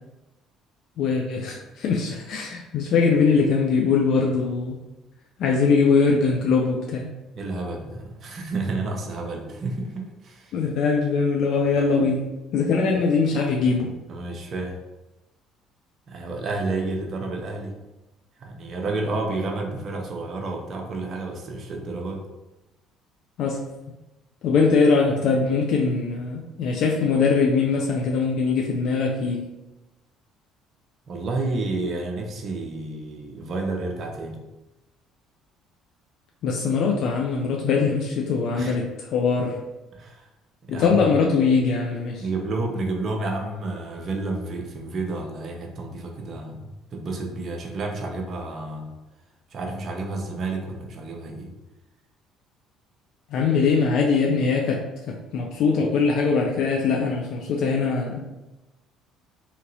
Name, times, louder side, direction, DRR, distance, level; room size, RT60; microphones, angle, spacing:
voice 1, 1.0-4.8 5.4-7.1 10.5-12.3 12.5-13.9 23.4-23.6 24.4-29.5 36.4-39.6 40.7-42.2 53.3-58.4, left 4 dB, 60° left, -1 dB, 0.4 m, -22 dB
voice 2, 7.3-10.6 12.9-13.0 14.1-14.8 16.1-17.8 18.4-22.2 31.1-34.4 38.5-38.8 39.9-40.3 40.7-41.2 42.2-48.9 49.5-51.5, right 2 dB, 50° right, 2 dB, 0.6 m, -30 dB
2.9 x 2.7 x 2.6 m, 1.0 s
hypercardioid pair, 55°, 0 cm